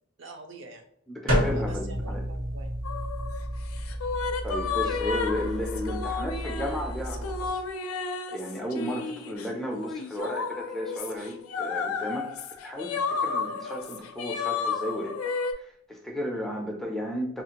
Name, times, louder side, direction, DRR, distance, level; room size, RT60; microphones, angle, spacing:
voice 1, 0.2-0.9 1.5-2.7 4.8-5.0 16.3-16.5, right 3 dB, 60° right, 5 dB, 0.5 m, -45 dB
voice 2, 1.1-2.2 4.4-7.6 8.3-12.3 12.6-15.2 15.6-17.4, left 1 dB, ahead, 0 dB, 0.3 m, -34 dB
sound 1, 1.3-7.5, equal, 90° right, 1.1 m, -31 dB
sound 2, 2.8-15.5, left 5 dB, 90° left, 0.4 m, -32 dB
2.9 x 2.4 x 2.8 m, 0.66 s
head